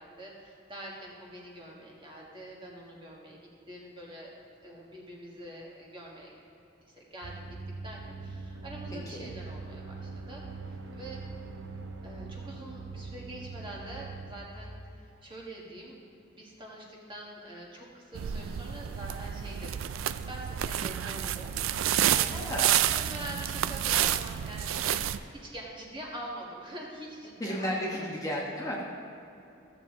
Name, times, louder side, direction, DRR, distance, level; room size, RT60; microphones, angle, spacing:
voice 1, 0.0-4.3 4.6-6.3 6.8-7.6 7.8-11.3 12.0-16.0 16.3-20.0 20.3-21.5 22.1-22.5 22.9-28.0, right 1 dB, 25° right, -3 dB, 1.7 m, -45 dB
sound 1, 7.2-14.4, right 3 dB, 65° right, 0.8 m, -42 dB
voice 2, 8.9-9.3 22.3-22.7 27.4-28.9, equal, 20° left, -3 dB, 1.1 m, -33 dB
sound 2, 18.1-25.2, right 10 dB, 80° right, 0.3 m, -29 dB
14.5 x 7.2 x 3.8 m, 2.8 s
head